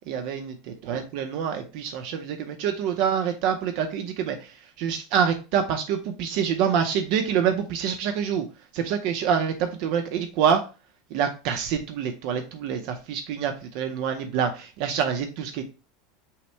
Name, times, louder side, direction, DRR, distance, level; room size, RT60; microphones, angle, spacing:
voice 1, 0.1-0.5 0.8-8.5 8.7-10.6 11.1-15.6, right 7 dB, 55° right, 5 dB, 0.6 m, -26 dB
5.6 x 2.1 x 4.4 m, 0.32 s
supercardioid pair, 150°, 0 cm